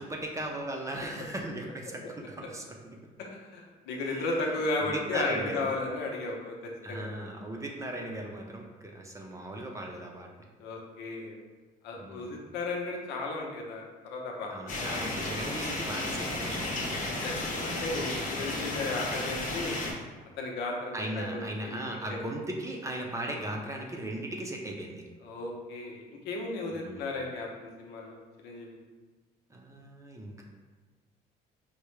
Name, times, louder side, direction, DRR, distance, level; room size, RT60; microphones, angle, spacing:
voice 1, 0.0-2.7 4.0-4.4 4.8-5.7 6.8-10.3 12.0-12.4 14.5-17.6 18.3-18.6 20.9-25.0 26.8-27.1 29.5-30.4, right 1 dB, 20° right, 0 dB, 0.5 m, -38 dB
voice 2, 3.2-7.1 10.6-11.4 11.8-15.8 17.1-19.8 20.4-21.8 22.1-22.2 25.2-28.8, left 2 dB, 85° left, 0 dB, 0.7 m, -35 dB
sound 1, 14.7-19.9, left 2 dB, 45° left, 0.8 m, -33 dB
4.6 x 2.1 x 3.1 m, 1.3 s
cardioid pair, 110°, 17 cm